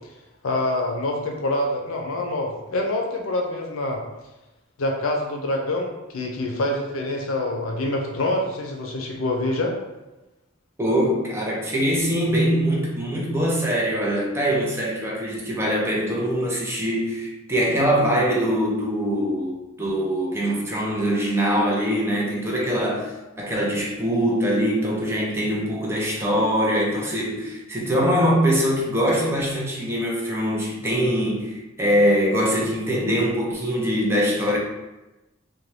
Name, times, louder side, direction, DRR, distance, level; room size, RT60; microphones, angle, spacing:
voice 1, 0.4-4.0 4.8-9.8, left 1 dB, 85° left, 1 dB, 0.5 m, -26 dB
voice 2, 10.8-23.1 23.4-34.6, equal, 15° right, -3 dB, 0.5 m, -23 dB
2.6 x 2.2 x 3.1 m, 1.0 s
head